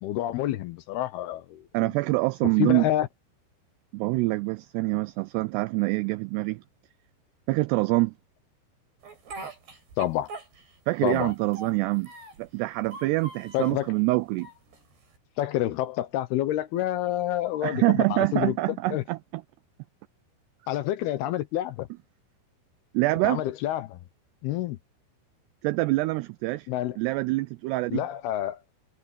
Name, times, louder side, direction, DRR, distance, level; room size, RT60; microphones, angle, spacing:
voice 1, 0.0-1.9 2.6-3.1 10.0-10.3 11.0-11.3 13.5-13.9 15.4-19.0 20.7-21.9 23.2-24.0 24.4-24.8 26.7-27.0 27.9-28.6, left 13 dB, 75° left, 2.5 m, -28 dB
voice 2, 1.7-2.9 3.9-6.6 7.5-8.1 10.9-12.1 12.4-14.5 17.6-19.4 22.9-23.4 25.6-26.7 27.0-28.0, right 21 dB, 90° right, 2.4 m, -25 dB
Speech, 9.0-10.8 11.1-12.5 12.8-13.8 14.4-15.2, right 3 dB, 60° right, 8.6 m, -42 dB
omnidirectional pair, 5.4 m